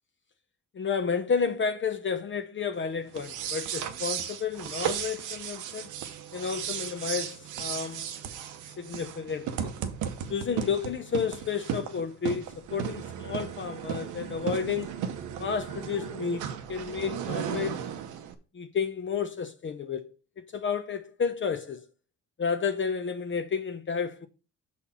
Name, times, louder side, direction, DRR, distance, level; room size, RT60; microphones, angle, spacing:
voice 1, 0.7-5.9 6.3-8.1 8.8-9.7 10.3-15.0 15.4-17.9 18.5-21.8 22.4-24.3, left 6 dB, 40° left, 0.8 m, -31 dB
sound 1, 3.1-18.3, right 9 dB, 90° right, 0.9 m, -35 dB
6.2 x 4.3 x 5.6 m
cardioid pair, 90°, 30 cm